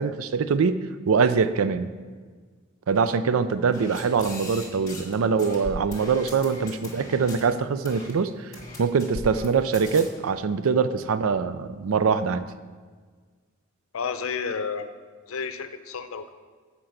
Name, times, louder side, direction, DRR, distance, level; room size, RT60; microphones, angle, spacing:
voice 1, 0.0-1.9 2.9-8.5 8.8-12.4, right 5 dB, 90° right, 12 dB, 0.4 m, -23 dB
sound 1, 3.7-5.1 5.4-7.4 7.8-8.1 8.5-9.5 9.7-10.0, left 1 dB, 15° left, 1.3 m, -39 dB
voice 2, 13.9-14.9 15.3-16.3, left 5 dB, 85° left, 10 dB, 0.6 m, -31 dB
8.7 x 4.5 x 6.5 m, 1.5 s
head